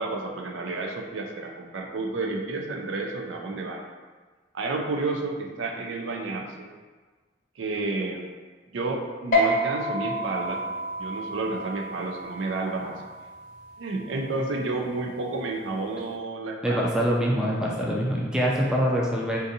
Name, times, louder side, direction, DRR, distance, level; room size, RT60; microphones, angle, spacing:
voice 1, 0.0-3.8 4.5-6.7 7.6-8.3 8.7-10.6 11.0-13.0 13.8-16.9, right 3 dB, 90° right, 2 dB, 0.4 m, -31 dB
sound 1, 9.3-16.1, equal, 45° left, 0.7 m, -30 dB
voice 2, 16.6-19.4, equal, 5° right, -3 dB, 0.4 m, -24 dB
3.8 x 2.5 x 2.6 m, 1.4 s
head